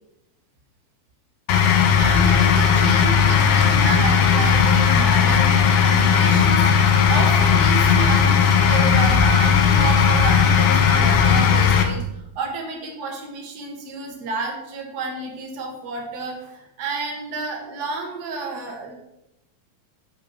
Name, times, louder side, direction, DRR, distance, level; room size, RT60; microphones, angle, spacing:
sound 1, 1.5-11.8, left 7 dB, 80° left, 1.4 m, -16 dB
voice 1, 2.0-18.9, right 3 dB, 70° right, 1 dB, 0.9 m, -31 dB
7.2 x 5.5 x 6.7 m, 0.90 s
omnidirectional pair, 4.3 m